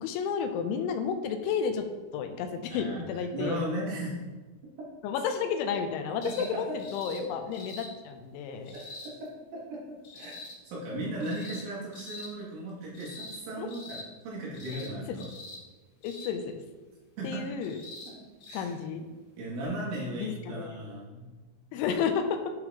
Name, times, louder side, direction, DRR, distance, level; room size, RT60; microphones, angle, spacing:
voice 1, 0.0-1.9 2.1-3.7 5.0-8.7 13.5-13.7 15.1-15.2 16.0-16.6 17.2-17.8 18.5-19.1 20.2-20.8 21.7-22.5, left 6 dB, 85° left, 7 dB, 3.0 m, -32 dB
voice 2, 2.7-3.0 3.3-4.1 4.6-4.9 6.2-6.8 7.1-7.3 8.7-15.3 17.2-17.4 18.1-18.7 19.4-21.3, right 1 dB, 85° right, -6 dB, 4.8 m, -37 dB
sound 1, 6.2-6.5 6.8-7.2 7.5-7.9 8.7-9.1 10.0-10.5 11.2-11.6 11.9-12.3 12.9-13.4 13.7-14.0 14.5-14.9 15.2-15.6 16.0-16.3 17.6-18.1 18.4-18.6 19.6-19.7, left 3 dB, 65° left, 2.6 m, -44 dB
11.5 x 5.7 x 3.0 m, 1.2 s
omnidirectional pair, 5.5 m